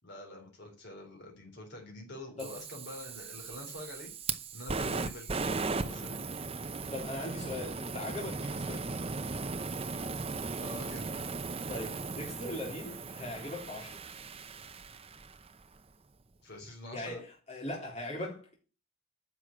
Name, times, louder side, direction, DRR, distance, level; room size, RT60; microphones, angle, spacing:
voice 1, 0.0-4.1 4.5-6.3 10.6-11.3 16.4-17.2, left 1 dB, 50° left, 3.7 m, -46 dB
Fire, 2.4-15.5, right 4 dB, 25° right, 0.7 m, -37 dB
voice 2, 6.9-9.0 11.7-14.0 16.9-18.6, left 1 dB, 30° left, 4.0 m, -40 dB
9.9 x 6.2 x 8.7 m
head